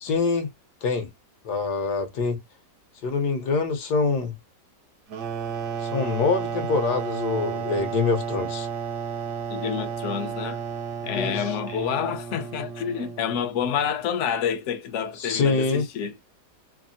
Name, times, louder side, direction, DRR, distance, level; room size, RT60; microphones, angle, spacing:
voice 1, 0.0-0.5 0.8-1.1 1.4-2.4 3.0-4.3 5.8-8.7 11.2-11.8 15.2-15.8, left 4 dB, 75° left, 1.4 m, -25 dB
sound 1, 5.1-13.6, right 7 dB, 70° right, 0.7 m, -32 dB
voice 2, 9.5-10.6 11.0-16.1, left 8 dB, 60° left, 0.8 m, -28 dB
3.3 x 2.0 x 2.6 m
omnidirectional pair, 1.8 m